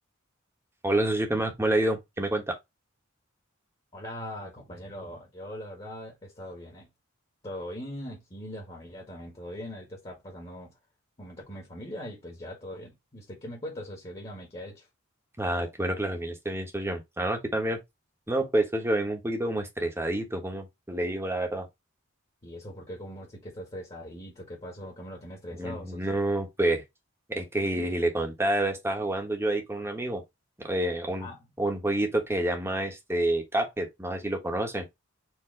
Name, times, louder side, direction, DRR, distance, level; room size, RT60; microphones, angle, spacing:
voice 1, 0.8-2.6 15.4-17.8 18.3-21.7 25.5-26.8 27.3-30.2 30.6-31.3 31.6-34.8, right 1 dB, 10° right, 1.1 m, -28 dB
voice 2, 3.9-6.9 7.4-10.7 11.2-14.9 22.4-26.1 31.2-31.4, equal, 30° left, 1.5 m, -41 dB
4.7 x 2.8 x 3.7 m
head